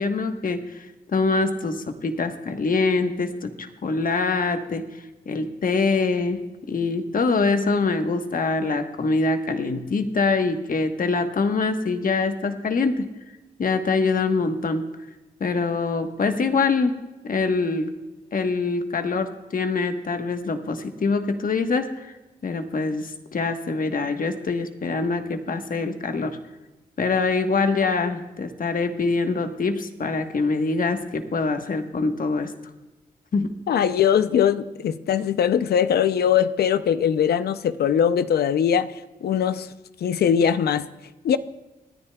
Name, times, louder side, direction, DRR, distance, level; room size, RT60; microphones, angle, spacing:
voice 1, 0.0-4.9 5.3-6.4 6.7-13.1 13.6-14.8 15.4-16.9 17.2-17.9 18.3-22.1 22.4-26.4 27.0-32.5 33.3-33.6, left 4 dB, 60° left, 7 dB, 1.2 m, -24 dB
voice 2, 33.7-38.9 39.2-39.7 40.0-40.9 41.2-41.4, left 8 dB, 75° left, 14 dB, 0.5 m, -21 dB
27.0 x 9.8 x 2.3 m, 1.1 s
supercardioid pair, 45°, 16 cm